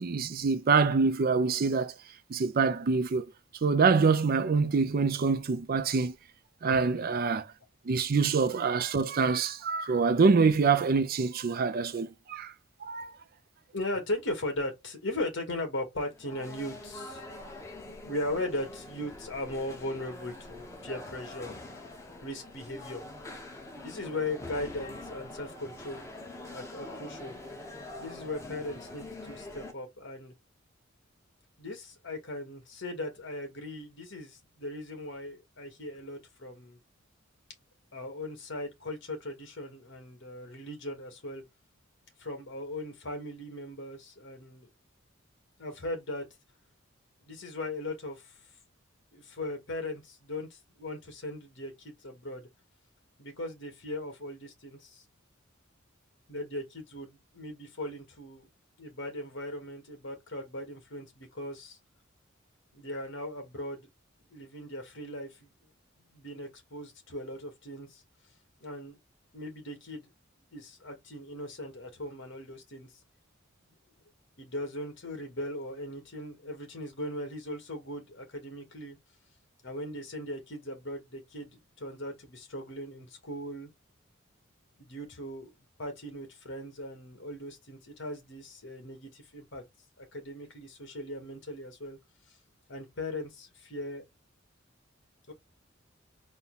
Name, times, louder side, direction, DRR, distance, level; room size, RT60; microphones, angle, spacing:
voice 1, 0.0-1.9 2.3-3.3 3.6-6.1 6.6-7.5 7.9-12.5 12.8-13.1, right 4 dB, 45° right, 0.5 m, -25 dB
voice 2, 6.6-7.0 13.7-17.3 18.0-21.6 22.2-23.0 23.8-26.1 26.5-27.3 28.0-30.3 31.6-36.8 37.9-41.4 42.2-44.7 45.6-46.3 47.2-48.4 49.1-52.5 53.2-55.0 56.3-58.5 58.8-61.8 62.7-63.9 64.3-65.5 66.1-68.0 68.6-69.0 69.3-70.1 70.5-72.9 74.4-79.0 79.6-83.7 84.8-85.5 85.8-89.6 90.0-92.0 92.7-94.0 95.3-95.4, left 1 dB, 65° left, 1.8 m, -38 dB
sound 1, 16.1-29.7, left 2 dB, 15° left, 1.0 m, -44 dB
4.2 x 2.2 x 4.0 m
head